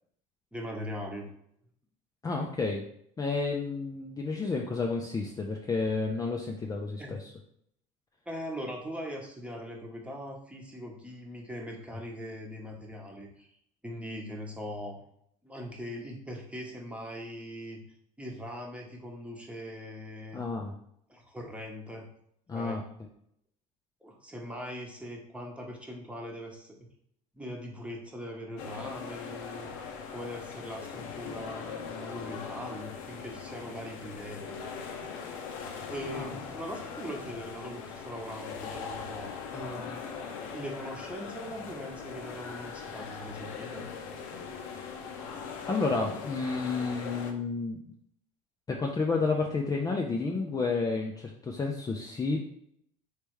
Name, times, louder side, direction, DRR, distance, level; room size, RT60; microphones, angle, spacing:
voice 1, 0.5-1.3 7.0-7.1 8.3-13.5 13.8-15.0 15.4-17.8 18.2-20.5 21.1-22.1 22.5-22.8 24.0-26.9 27.3-29.7 30.1-34.5 35.9-40.2 40.5-43.9, equal, 5° right, -1 dB, 1.0 m, -41 dB
voice 2, 2.2-2.8 3.2-7.3 20.3-20.7 22.5-22.8 36.1-36.3 44.6-44.9 45.7-47.8 48.7-52.4, left 4 dB, 20° left, 0 dB, 0.5 m, -31 dB
sound 1, 28.6-47.3, left 6 dB, 80° left, 0.6 m, -40 dB
3.4 x 3.3 x 3.1 m, 0.69 s
hypercardioid pair, 80°, 18 cm